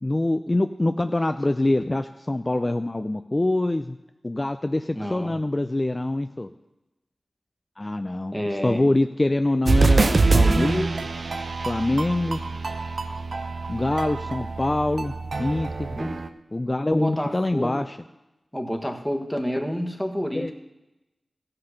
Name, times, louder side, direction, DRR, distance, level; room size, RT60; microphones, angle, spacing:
voice 1, 0.0-4.0 4.2-6.5 7.8-8.3 8.6-10.9 11.7-12.4 13.7-15.9 16.5-18.0 20.3-20.5, left 2 dB, 35° left, 8 dB, 0.4 m, -24 dB
voice 2, 4.9-5.4 8.3-8.9 14.4-14.5 16.0-16.3 16.9-17.8 18.5-20.5, equal, 5° left, 3 dB, 1.4 m, -29 dB
sound 1, 9.7-16.3, right 3 dB, 75° right, 0.6 m, -24 dB
14.5 x 5.8 x 6.6 m, 0.99 s
cardioid pair, 45°, 0 cm